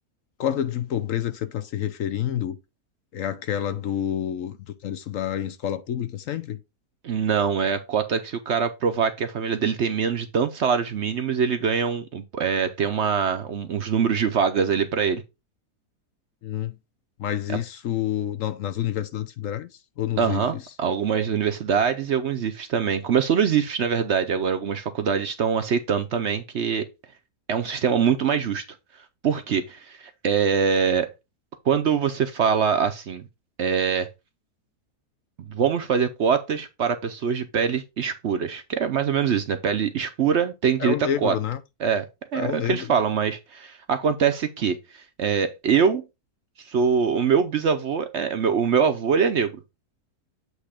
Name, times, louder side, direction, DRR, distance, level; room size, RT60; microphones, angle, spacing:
voice 1, 0.4-2.6 3.1-6.6 16.4-16.7 17.2-19.7 20.0-20.6 40.8-41.6 42.3-42.9, left 10 dB, 65° left, 0.9 m, -28 dB
voice 2, 7.0-15.2 17.5-17.6 20.2-26.9 27.5-28.6 29.2-31.1 31.6-33.2 33.6-34.1 35.4-41.0 41.2-41.4 41.8-42.0 42.3-46.0 46.7-49.5, right 6 dB, 60° right, 0.8 m, -23 dB
8.2 x 3.1 x 4.9 m
omnidirectional pair, 1.6 m